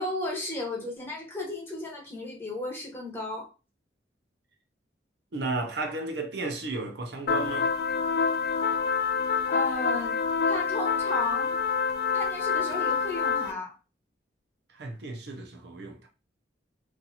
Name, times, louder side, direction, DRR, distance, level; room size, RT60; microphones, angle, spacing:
voice 1, 0.0-3.5 9.5-11.6 12.1-13.7, left 2 dB, 10° left, 1.0 m, -34 dB
voice 2, 5.3-7.7 14.7-16.1, right 3 dB, 65° right, 0.6 m, -33 dB
sound 1, 7.3-13.5, left 5 dB, 55° left, 0.3 m, -27 dB
2.8 x 2.5 x 4.0 m
head